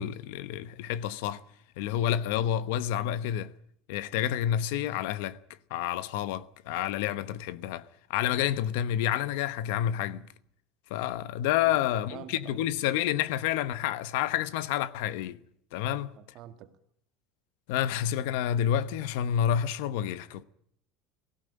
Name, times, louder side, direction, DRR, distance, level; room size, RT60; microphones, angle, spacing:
voice 1, 0.0-1.4 1.8-3.5 3.9-5.4 5.7-10.2 10.9-15.4 15.7-16.1 17.7-20.4, left 11 dB, 70° left, 1.0 m, -29 dB
voice 2, 11.6-12.7 15.9-16.7, right 11 dB, 40° right, 1.9 m, -46 dB
18.0 x 16.0 x 9.8 m
cardioid pair, 175°, 0 cm